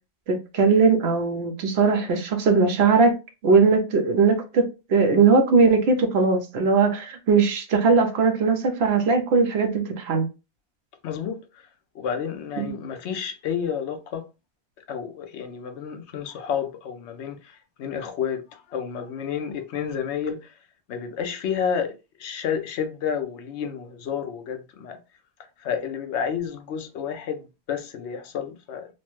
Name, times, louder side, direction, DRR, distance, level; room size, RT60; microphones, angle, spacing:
voice 1, 0.3-3.1 3.4-10.3 12.6-12.7, right 4 dB, 70° right, 0.9 m, -20 dB
voice 2, 11.0-11.7 11.9-14.2 14.9-20.6 20.9-25.0 25.6-28.9, left 7 dB, 80° left, 0.9 m, -30 dB
3.1 x 2.1 x 3.0 m
omnidirectional pair, 1.1 m